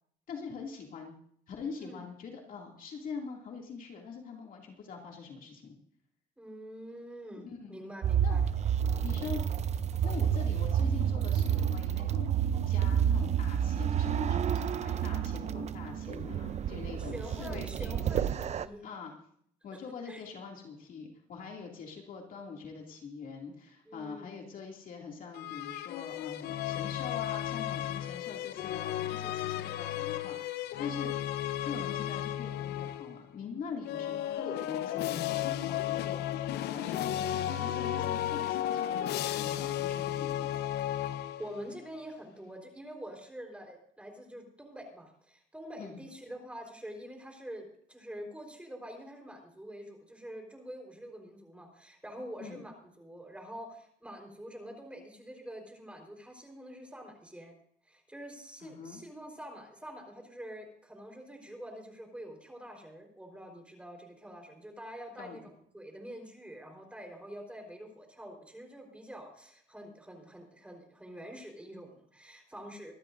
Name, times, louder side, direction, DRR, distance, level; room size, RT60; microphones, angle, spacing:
voice 1, 0.3-1.1 1.5-5.8 7.4-7.8 8.2-8.4 9.0-9.4 10.0-18.2 18.8-19.1 19.6-31.2 31.6-40.6 45.8-46.0 52.4-52.6 58.6-59.0 65.2-65.5, left 5 dB, 55° left, 0 dB, 2.5 m, -43 dB
voice 2, 6.4-8.5 17.0-18.9 20.1-20.2 23.9-24.4 41.4-52.7 53.0-57.5 57.8-65.4 65.7-72.9, equal, 5° right, 2 dB, 4.1 m, -46 dB
sound 1, 8.0-18.7, right 8 dB, 40° right, 0.6 m, -29 dB
sound 2, 25.3-33.2 33.8-41.7, left 12 dB, 75° left, 0.7 m, -34 dB
24.0 x 12.5 x 2.6 m, 0.63 s
cardioid pair, 110°, 17 cm